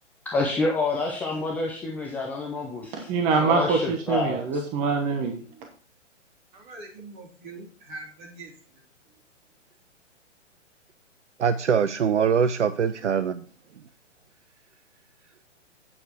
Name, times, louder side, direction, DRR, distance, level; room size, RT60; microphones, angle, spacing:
voice 1, 0.3-3.1 3.4-4.4, left 3 dB, 5° left, -1 dB, 0.5 m, -28 dB
voice 2, 2.9-5.4, right 4 dB, 20° right, 4 dB, 1.0 m, -24 dB
voice 3, 6.5-8.5, right 2 dB, 40° right, 0 dB, 3.4 m, -42 dB
voice 4, 11.4-13.4, right 7 dB, 70° right, 12 dB, 0.7 m, -23 dB
8.8 x 6.6 x 4.5 m, 0.41 s
figure-of-eight pair, 125°, 37 cm